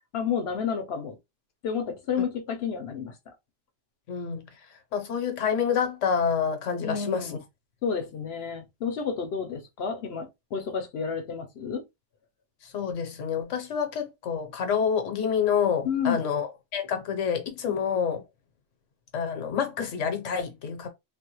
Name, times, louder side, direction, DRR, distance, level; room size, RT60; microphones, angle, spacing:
voice 1, 0.1-1.2 1.6-3.3 6.8-7.4 7.8-11.8 15.8-16.2 17.7-17.8, left 6 dB, 60° left, 0.8 m, -31 dB
voice 2, 4.1-4.4 4.9-7.4 12.6-18.2 19.1-20.9, left 7 dB, 80° left, 1.1 m, -28 dB
3.3 x 2.1 x 2.9 m
omnidirectional pair, 1.3 m